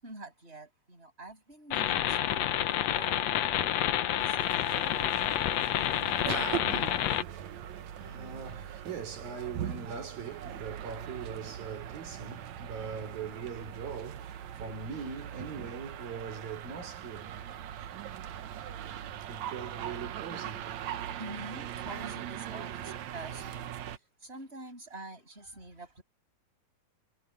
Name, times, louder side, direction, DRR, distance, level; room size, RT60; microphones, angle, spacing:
voice 1, 0.0-3.7 4.1-5.1 13.0-13.4 21.2-23.7 24.2-26.0, right 2 dB, 15° right, 7.0 m, -46 dB
sound 1, 1.7-7.2, left 12 dB, 70° left, 1.6 m, -29 dB
sound 2, 4.4-24.0, right 10 dB, 65° right, 2.0 m, -40 dB
voice 2, 7.3-17.6 18.5-18.6 19.3-20.7, right 6 dB, 80° right, 6.7 m, -41 dB
omnidirectional pair, 4.0 m